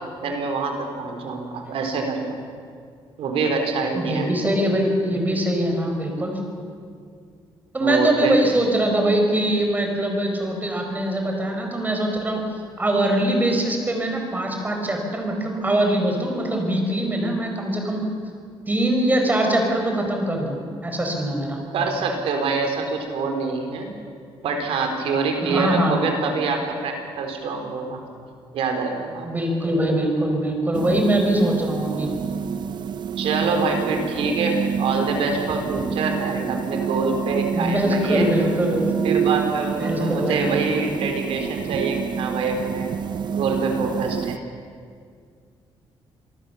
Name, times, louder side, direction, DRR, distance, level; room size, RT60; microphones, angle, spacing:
voice 1, 0.2-2.3 3.2-4.3 7.8-8.4 21.7-23.9 24.4-28.0 28.5-29.3 33.2-38.3 39.0-42.9 43.3-44.4, right 4 dB, 80° right, 4 dB, 4.0 m, -25 dB
voice 2, 4.0-6.4 7.7-12.4 12.8-18.0 18.7-20.6 20.8-21.6 25.4-26.0 29.2-32.1 37.5-38.9 39.8-40.6, right 1 dB, 20° right, 2 dB, 5.2 m, -22 dB
sound 1, 30.7-44.4, right 7 dB, 50° right, 0.9 m, -27 dB
27.5 x 19.0 x 7.1 m, 2.2 s
cardioid pair, 130°, 9 cm